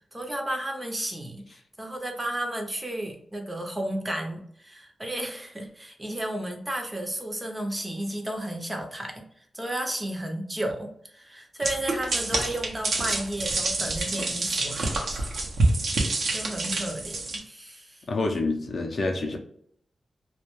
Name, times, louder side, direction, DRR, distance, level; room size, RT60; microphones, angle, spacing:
voice 1, 0.1-15.4 15.9-18.0, right 1 dB, 15° right, 3 dB, 0.5 m, -33 dB
sound 1, 11.6-17.4, right 2 dB, 75° right, 0.6 m, -27 dB
voice 2, 18.1-19.4, left 3 dB, 55° left, 2 dB, 0.4 m, -27 dB
2.2 x 2.2 x 2.9 m, 0.66 s
wide cardioid pair, 90°, 0 cm